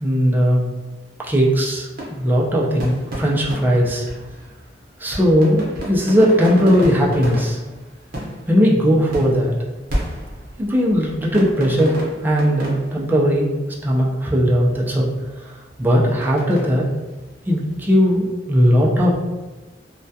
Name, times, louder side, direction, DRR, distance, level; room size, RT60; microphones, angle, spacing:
voice 1, 0.0-0.7 1.2-4.0 5.0-7.6 8.5-9.5 10.6-11.9 12.2-13.5 13.8-15.1 15.8-16.8 17.5-19.2, equal, 10° right, -3 dB, 0.3 m, -18 dB
sound 1, 1.2-17.9, equal, 55° right, 0.7 m, -33 dB
2.2 x 2.2 x 2.6 m, 1.2 s
head